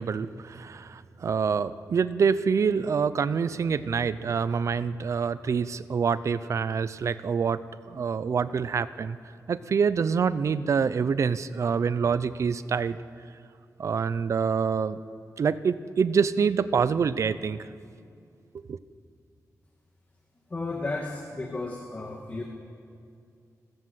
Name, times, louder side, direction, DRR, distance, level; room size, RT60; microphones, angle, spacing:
voice 1, 0.0-7.6 7.9-9.2 9.5-13.0 13.8-15.0 15.4-17.7 18.7-18.8, right 6 dB, 55° right, 15 dB, 0.7 m, -26 dB
voice 2, 20.5-22.4, left 2 dB, 25° left, 1 dB, 1.7 m, -33 dB
29.5 x 13.5 x 7.9 m, 2.4 s
wide cardioid pair, 160°, 6 cm